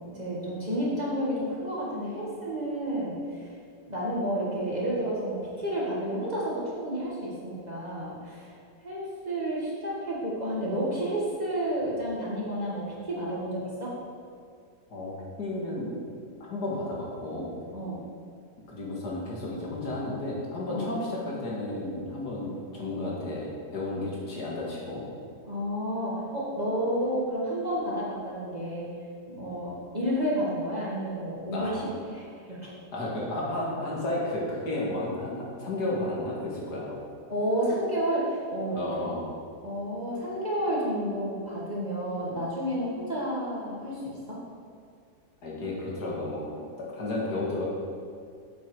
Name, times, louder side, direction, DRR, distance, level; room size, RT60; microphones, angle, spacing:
voice 1, 0.1-3.5 3.9-8.5 8.8-13.9 17.7-18.0 20.7-20.9 22.4-22.5 25.4-28.9 29.3-31.9 32.1-32.7 37.3-38.8 39.6-44.0 44.3-44.4, equal, 25° right, -6 dB, 1.9 m, -31 dB
voice 2, 15.4-16.0 16.4-17.5 18.7-25.0 31.5-31.8 32.9-37.0 38.7-39.3 45.4-47.7, left 1 dB, 70° left, -4 dB, 2.3 m, -32 dB
8.4 x 7.7 x 4.9 m, 2.3 s
omnidirectional pair, 1.8 m